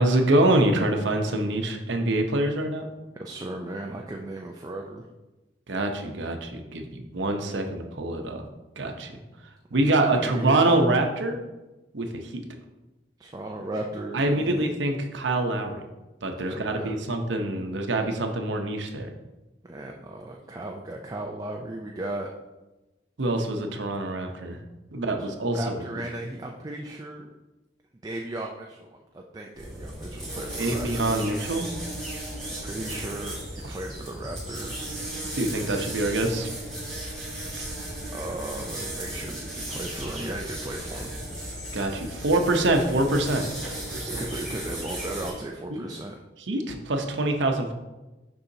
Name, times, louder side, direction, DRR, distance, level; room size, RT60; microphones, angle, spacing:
voice 1, 0.0-2.9 5.7-8.4 8.8-9.1 9.7-11.4 11.9-12.1 12.3-12.4 14.1-15.8 16.2-19.1 23.2-24.6 24.9-25.8 30.6-31.7 35.3-36.5 41.7-44.2 45.7-45.8 46.5-47.7, right 2 dB, 75° right, 4 dB, 0.8 m, -25 dB
voice 2, 3.2-5.1 9.7-10.8 13.2-14.7 16.5-17.0 19.6-22.3 25.2-27.3 28.0-31.3 32.5-34.9 38.1-41.1 43.6-43.9 44.2-46.2, right 1 dB, 20° right, 1 dB, 0.4 m, -36 dB
sound 1, 29.5-45.3, right 1 dB, 5° left, 2.0 m, -35 dB
6.8 x 5.5 x 2.7 m, 1.1 s
head